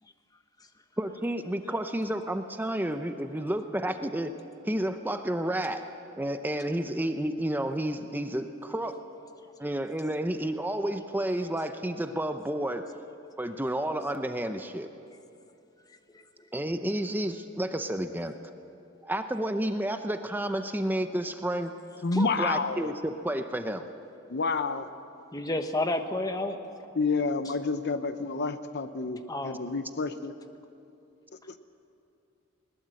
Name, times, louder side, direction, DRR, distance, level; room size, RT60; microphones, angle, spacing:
voice 1, 1.0-4.3 4.6-5.8 6.2-9.0 9.6-12.9 13.4-14.9 16.5-18.3 19.0-21.7 22.1-23.9, right 1 dB, 10° right, 7 dB, 0.7 m, -31 dB
voice 2, 22.0-22.9 24.3-24.9 26.9-30.3 31.5-31.6, left 4 dB, 55° left, 11 dB, 0.8 m, -29 dB
voice 3, 25.3-26.6 29.3-29.6, left 2 dB, 20° left, 7 dB, 1.1 m, -30 dB
20.5 x 20.0 x 7.7 m, 2.7 s
head